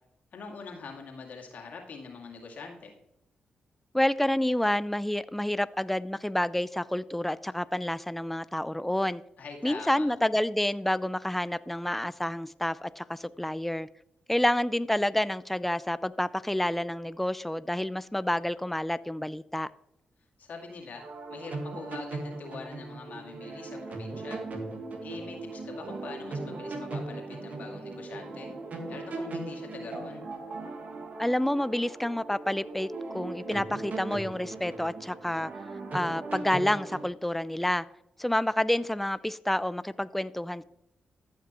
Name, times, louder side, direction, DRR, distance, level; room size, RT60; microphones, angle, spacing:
voice 1, 0.3-2.9 9.4-10.1 20.4-24.4 25.0-28.5 28.9-30.2, left 4 dB, 70° left, 2.2 m, -44 dB
voice 2, 3.9-9.2 9.6-13.9 14.3-19.7 31.2-35.5 35.9-37.9 38.2-40.6, left 1 dB, 5° left, 0.4 m, -29 dB
sound 1, 21.0-37.1, right 3 dB, 60° right, 1.6 m, -38 dB
14.0 x 5.9 x 3.0 m
supercardioid pair, 45°, 3 cm